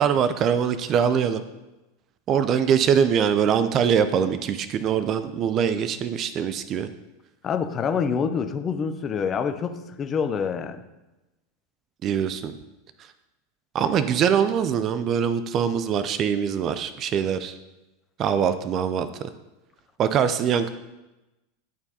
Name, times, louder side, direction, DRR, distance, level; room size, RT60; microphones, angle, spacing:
voice 1, 0.0-1.4 2.3-6.9 12.0-12.6 13.7-17.6 18.2-19.3 20.0-20.7, right 8 dB, 40° right, 12 dB, 0.4 m, -23 dB
voice 2, 7.4-10.8, left 6 dB, 30° left, 8 dB, 0.6 m, -26 dB
11.0 x 4.5 x 2.8 m, 1.0 s
hypercardioid pair, 85°, 0 cm